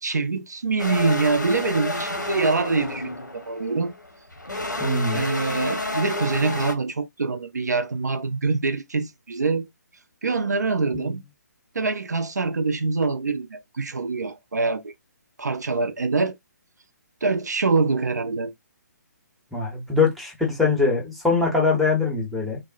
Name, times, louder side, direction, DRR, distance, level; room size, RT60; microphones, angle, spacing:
voice 1, 0.0-3.9 5.1-9.7 10.2-11.2 11.7-14.9 15.4-16.3 17.2-18.5, right 4 dB, 65° right, 0.4 m, -25 dB
sound 1, 0.8-6.7, left 2 dB, 85° left, 1.0 m, -30 dB
voice 2, 4.8-5.3 10.9-11.1 19.5-22.6, left 4 dB, ahead, 0.7 m, -22 dB
3.3 x 2.0 x 2.3 m
figure-of-eight pair, 140°, 10 cm